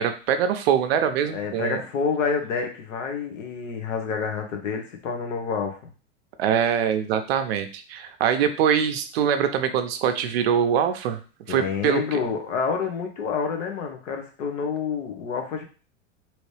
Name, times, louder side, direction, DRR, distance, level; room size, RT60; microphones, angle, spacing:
voice 1, 0.0-1.8 6.4-11.2 11.5-12.2, right 8 dB, 55° right, 8 dB, 0.5 m, -23 dB
voice 2, 1.2-5.8 11.5-15.6, left 5 dB, 85° left, 3 dB, 1.1 m, -28 dB
3.1 x 2.8 x 3.2 m, 0.37 s
supercardioid pair, 160°, 37 cm